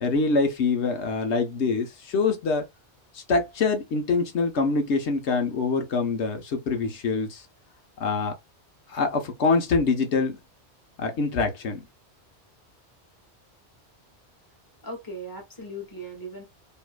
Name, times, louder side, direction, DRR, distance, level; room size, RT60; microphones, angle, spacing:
voice 1, 0.0-2.6 3.1-7.5 8.0-8.3 8.9-10.4 11.0-11.9, left 4 dB, 85° left, 1.2 m, -25 dB
voice 2, 14.8-16.4, right 1 dB, 20° left, 1.6 m, -38 dB
5.6 x 2.8 x 2.2 m
omnidirectional pair, 1.1 m